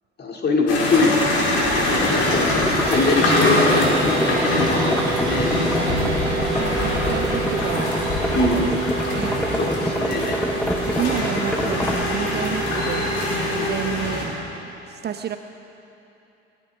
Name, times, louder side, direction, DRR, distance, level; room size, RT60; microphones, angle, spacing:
voice 1, 0.2-5.0 5.2-5.5 8.3-8.7 9.6-10.4, left 2 dB, 30° left, 0 dB, 2.7 m, -23 dB
sound 1, 0.7-14.2, left 2 dB, 45° left, 4.6 m, -24 dB
sound 2, 2.0-12.0, equal, ahead, 1.2 m, -27 dB
sound 3, 2.8-13.9, right 5 dB, 70° right, 2.6 m, -30 dB
voice 2, 5.6-8.8 9.1-9.4 11.0-14.3 14.9-15.4, right 9 dB, 30° right, 8 dB, 0.7 m, -31 dB
29.0 x 12.0 x 3.6 m, 2.9 s
figure-of-eight pair, 60°, 33 cm